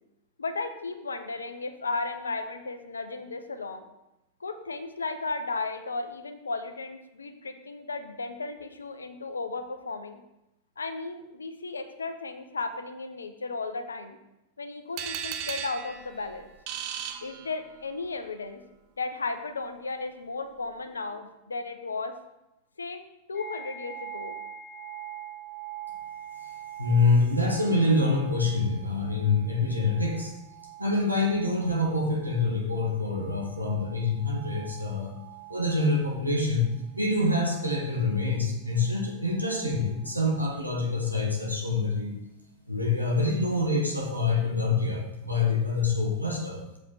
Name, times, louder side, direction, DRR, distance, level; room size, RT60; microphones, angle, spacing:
voice 1, 0.4-3.8 4.4-10.2 10.8-14.2 14.6-16.5 17.2-18.6 19.0-22.1 22.8-23.0 23.3-24.3, left 3 dB, 75° left, 9 dB, 0.7 m, -35 dB
sound 1, 15.0-18.0, right 8 dB, 45° right, 0.6 m, -36 dB
sound 2, 23.3-36.3 36.8-38.4 38.7-40.2, right 9 dB, 30° left, 1.7 m, -45 dB
voice 2, 26.8-30.3 30.8-35.2 35.5-36.7 36.9-42.2 42.7-46.6, left 3 dB, 90° right, -1 dB, 1.5 m, -26 dB
7.1 x 4.9 x 4.2 m, 0.92 s
figure-of-eight pair, 90°, 0 cm